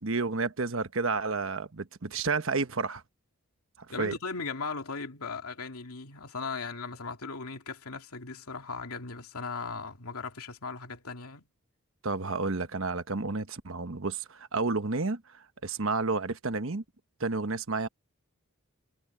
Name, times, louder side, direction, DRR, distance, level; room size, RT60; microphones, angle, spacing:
voice 1, 0.0-3.0 4.0-4.1 12.0-16.8 17.2-17.9, right 3 dB, 65° right, 1.1 m, -31 dB
voice 2, 3.9-11.4, left 4 dB, 90° left, 2.7 m, -38 dB
head